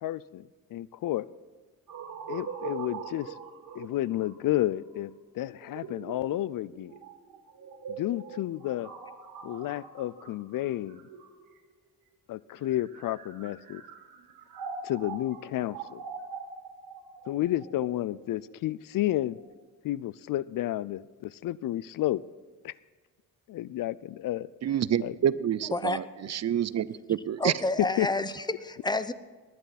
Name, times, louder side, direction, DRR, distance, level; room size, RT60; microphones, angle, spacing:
voice 1, 0.0-1.3 2.3-3.3 3.7-6.9 7.9-8.9 9.4-11.0 12.3-13.8 14.8-16.0 17.3-19.4 19.8-22.2 22.6-22.7 23.5-24.5 25.0-25.1 28.0-28.1, left 14 dB, 75° left, 0.5 m, -31 dB
sound 1, 1.9-11.7 12.5-19.4, right 6 dB, 85° right, 2.1 m, -43 dB
voice 2, 24.6-26.0 26.3-27.5, right 10 dB, 50° right, 0.5 m, -28 dB
voice 3, 27.4-29.1, left 2 dB, 10° left, 0.7 m, -29 dB
19.5 x 10.5 x 4.2 m
cardioid pair, 85°, 34 cm